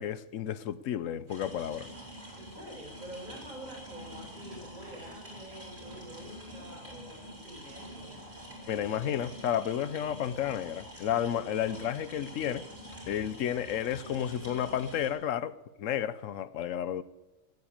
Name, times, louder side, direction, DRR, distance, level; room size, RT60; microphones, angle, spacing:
voice 1, 0.0-1.9 8.7-12.7 13.1-17.0, left 10 dB, 80° left, 1.1 m, -32 dB
sound 1, 1.3-15.1, equal, 50° right, 5.4 m, -46 dB
voice 2, 2.3-8.4, right 1 dB, 35° right, 5.1 m, -47 dB
17.0 x 8.1 x 8.7 m
omnidirectional pair, 1.3 m